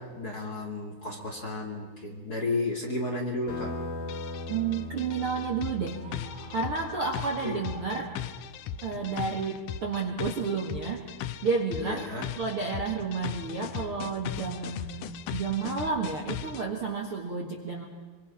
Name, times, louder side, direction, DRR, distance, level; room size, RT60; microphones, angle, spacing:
voice 1, 0.0-3.8 7.4-7.6 9.0-9.3 11.8-12.3, left 2 dB, 25° left, 0 dB, 2.6 m, -33 dB
sound 1, 3.5-8.6, left 2 dB, 60° left, 4.9 m, -40 dB
sound 2, 4.1-16.6, left 10 dB, 90° left, 1.8 m, -38 dB
voice 2, 4.5-6.0 6.5-8.1 8.8-11.0 11.4-12.0 12.4-17.9, right 5 dB, 45° right, 1 dB, 1.9 m, -31 dB
Screaming, 5.9-8.6, left 1 dB, 70° right, 7.1 m, -48 dB
25.5 x 24.5 x 5.7 m, 1.5 s
omnidirectional pair, 4.8 m